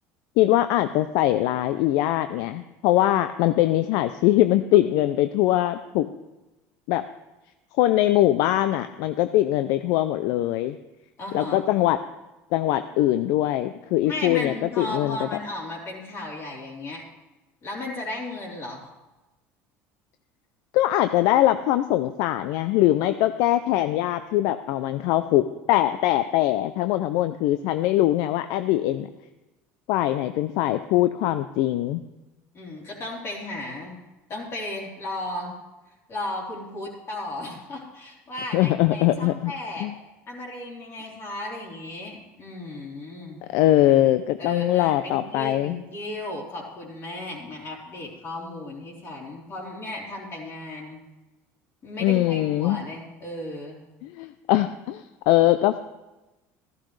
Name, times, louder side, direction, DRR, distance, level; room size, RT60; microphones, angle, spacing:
voice 1, 0.4-6.1 6.9-7.0 7.8-10.8 11.3-12.0 12.5-15.3 20.7-29.1 29.9-32.0 38.5-39.5 39.8-39.9 43.5-45.8 52.0-52.8 54.0-55.8, left 14 dB, 70° left, 11 dB, 0.4 m, -22 dB
voice 2, 11.2-11.7 14.0-17.0 17.6-18.8 32.5-34.0 34.3-35.6 36.1-39.9 40.3-43.4 44.4-51.0 51.8-53.8, left 1 dB, 40° left, -3 dB, 3.7 m, -35 dB
14.0 x 11.5 x 3.3 m, 1.0 s
supercardioid pair, 100°, 7 cm